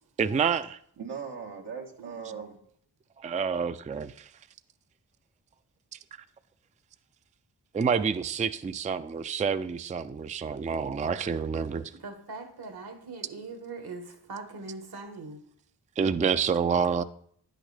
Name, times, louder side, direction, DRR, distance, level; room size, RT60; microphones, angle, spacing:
voice 1, 0.2-0.8 3.2-4.3 7.7-11.9 16.0-17.0, right 6 dB, 20° right, 0.3 m, -28 dB
voice 2, 1.0-2.6, right 6 dB, 90° right, 1.2 m, -39 dB
voice 3, 2.0-2.4 12.0-15.4, right 3 dB, 70° right, 1.4 m, -41 dB
10.0 x 6.4 x 3.3 m
cardioid pair, 40°, 39 cm